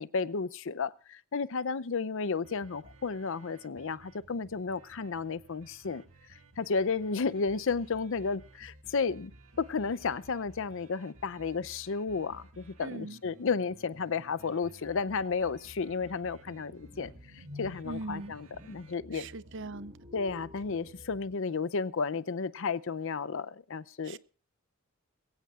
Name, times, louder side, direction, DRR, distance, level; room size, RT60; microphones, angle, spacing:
voice 1, 0.0-6.0 6.6-9.3 9.6-19.3 20.1-24.2, left 5 dB, 65° left, 0.6 m, -33 dB
sound 1, 2.4-21.3, right 1 dB, 75° right, 1.9 m, -55 dB
voice 2, 12.8-13.2 17.8-18.4 19.1-20.0 24.0-24.2, right 2 dB, 60° right, 0.7 m, -40 dB
sound 2, 16.4-21.4, left 3 dB, 35° right, 7.6 m, -51 dB
22.0 x 16.0 x 2.4 m
head